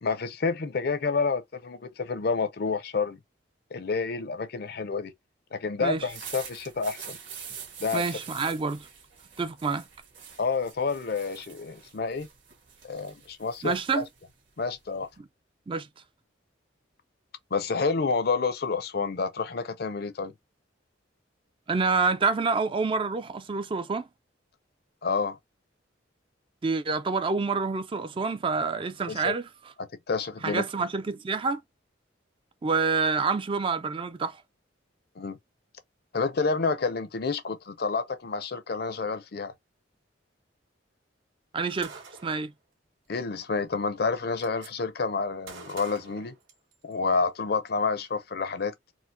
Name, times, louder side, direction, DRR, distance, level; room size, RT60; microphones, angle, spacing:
voice 1, 0.0-3.2 3.7-5.1 5.5-7.2 7.8-8.0 10.4-12.3 12.9-14.0 14.6-15.1 17.5-20.3 25.0-25.4 29.1-29.3 30.1-30.6 35.2-35.4 36.1-39.5 43.1-46.3 46.8-48.7, left 4 dB, 55° left, 0.5 m, -29 dB
sound 1, 5.9-15.2, right 7 dB, 70° right, 1.5 m, -45 dB
voice 2, 7.9-8.9 9.4-9.9 13.6-14.1 15.2-15.3 15.7-15.9 21.7-24.1 26.6-29.5 30.4-31.6 32.6-34.4 41.5-42.5, right 4 dB, 25° right, 0.3 m, -27 dB
Gunshot gunfire, 41.8-42.5 43.6-43.7 44.0-44.7 45.5-47.0, right 5 dB, 90° right, 2.0 m, -46 dB
4.3 x 2.0 x 2.6 m
head